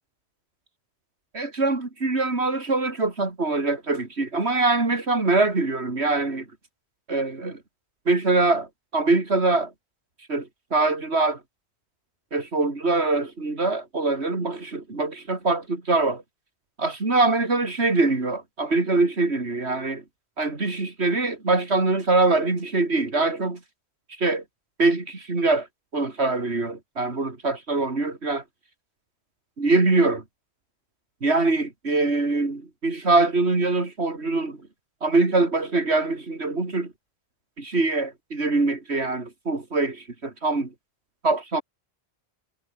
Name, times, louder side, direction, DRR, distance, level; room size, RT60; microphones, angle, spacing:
voice 1, 1.3-6.5 7.1-7.6 8.1-8.7 8.9-9.7 10.3-11.4 12.3-16.2 16.8-20.0 20.4-23.6 24.2-24.4 24.8-25.7 25.9-28.4 29.6-30.2 31.2-34.6 35.0-36.9 37.6-40.7 41.2-41.6, right 3 dB, 85° right, 3.5 m, -23 dB
omnidirectional pair, 1.1 m